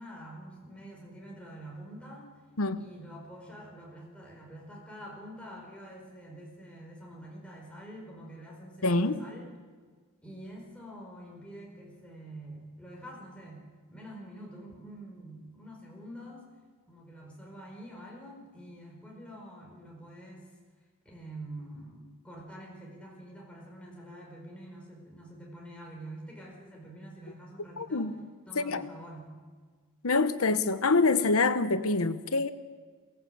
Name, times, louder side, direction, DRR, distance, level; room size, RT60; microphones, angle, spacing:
voice 1, 0.0-2.3 2.7-9.5 10.2-16.4 16.9-20.5 21.0-28.1 28.5-29.3, right 1 dB, 5° left, 4.9 m, -46 dB
voice 2, 8.8-9.2 27.8-28.1 28.6-28.8 30.0-32.5, left 3 dB, 75° left, 1.0 m, -26 dB
22.5 x 17.5 x 7.8 m
head